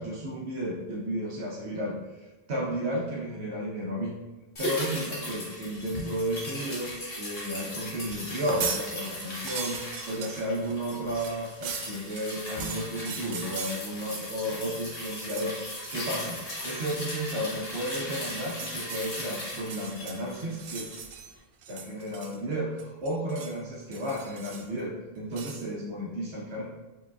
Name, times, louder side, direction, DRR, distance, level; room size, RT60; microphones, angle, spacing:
voice 1, 0.0-4.2 4.6-6.9 7.2-16.4 16.6-20.9 21.7-26.6, equal, 80° right, -3 dB, 1.1 m, -33 dB
sound 1, 4.6-21.1 21.4-21.5, left 1 dB, 60° left, 1.4 m, -38 dB
sound 2, 8.3-8.9 9.2-14.6 14.9-15.5 15.8-16.1 16.5-16.8 18.2-19.0 19.6-21.3 21.6-22.5 22.8-23.6 23.9-24.8 25.3-25.6, right 6 dB, 60° right, 0.6 m, -39 dB
4.8 x 3.8 x 2.4 m, 1.2 s
omnidirectional pair, 1.1 m